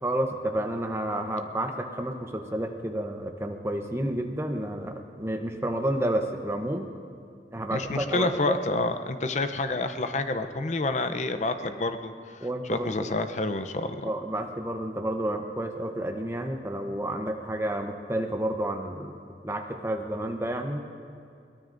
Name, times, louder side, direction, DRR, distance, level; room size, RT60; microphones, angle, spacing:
voice 1, 0.0-6.9 7.5-8.6 12.4-13.1 14.0-19.2 19.4-20.8, right 1 dB, 15° right, 3 dB, 0.8 m, -30 dB
voice 2, 7.7-12.1 12.7-14.1, left 2 dB, 40° left, 8 dB, 0.6 m, -28 dB
22.0 x 18.0 x 2.6 m, 2.4 s
head